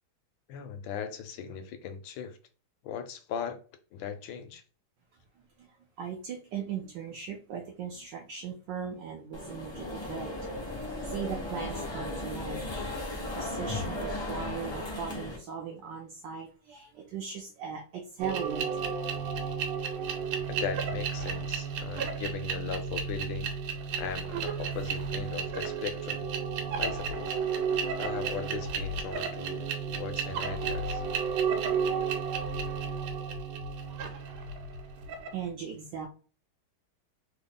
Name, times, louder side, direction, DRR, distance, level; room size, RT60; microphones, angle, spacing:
voice 1, 0.5-2.4 2.8-3.6 3.9-4.6 20.5-23.5 24.0-26.2 26.8-27.4 28.0-31.0, left 7 dB, 75° left, 1.3 m, -38 dB
voice 2, 5.6-10.3 10.8-18.9 35.3-36.1, right 7 dB, 70° right, 1.1 m, -39 dB
sound 1, 9.3-15.4, left 1 dB, 25° left, 0.7 m, -36 dB
sound 2, 18.2-35.4, right 6 dB, 90° right, 1.5 m, -32 dB
3.5 x 2.0 x 3.7 m
omnidirectional pair, 2.3 m